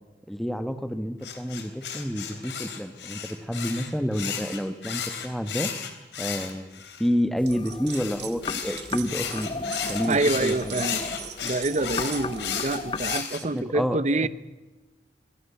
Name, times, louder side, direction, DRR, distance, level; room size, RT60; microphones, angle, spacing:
voice 1, 0.3-5.7 6.2-10.7 13.5-14.3, equal, ahead, 10 dB, 1.3 m, -29 dB
sound 1, 1.2-7.1 7.9-13.4, left 8 dB, 80° left, 3.4 m, -33 dB
sound 2, 7.4-13.2, left 3 dB, 30° left, 0.7 m, -36 dB
sound 3, 7.5-8.4 8.6-12.5, right 12 dB, 70° right, 1.7 m, -41 dB
voice 2, 10.1-11.1 11.4-14.3, right 2 dB, 40° right, 16 dB, 0.8 m, -26 dB
25.5 x 17.5 x 8.3 m, 1.2 s
head